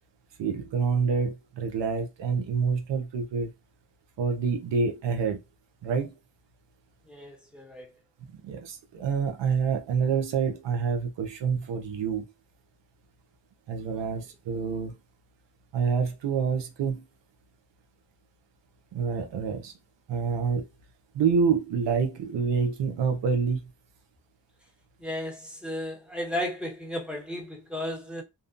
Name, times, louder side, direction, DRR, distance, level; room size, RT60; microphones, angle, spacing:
voice 1, 0.4-3.5 4.2-5.4 5.8-6.2 8.3-12.3 13.7-15.0 15.7-17.0 18.9-19.7 20.1-20.7 21.1-23.6, right 5 dB, 80° right, 0.7 m, -27 dB
voice 2, 7.1-7.9 25.0-28.2, left 1 dB, ahead, 1.0 m, -34 dB
2.6 x 2.1 x 2.5 m
cardioid pair, 50°, 42 cm